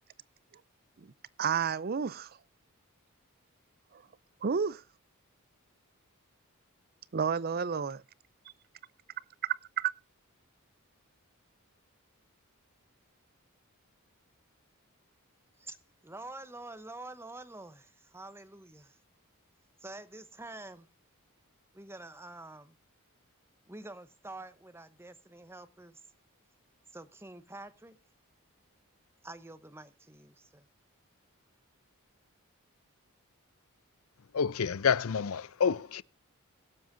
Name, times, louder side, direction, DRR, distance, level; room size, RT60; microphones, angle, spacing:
voice 1, 1.4-2.3 4.4-4.8 7.1-8.0 9.8-9.9, right 6 dB, 45° right, 0.5 m, -30 dB
voice 2, 16.0-19.0 19.8-20.9 21.7-22.8 23.7-26.0 26.9-28.0 29.2-30.7, right 2 dB, 10° right, 0.8 m, -47 dB
voice 3, 34.3-36.0, left 6 dB, 70° left, 0.5 m, -28 dB
22.0 x 7.7 x 2.6 m
head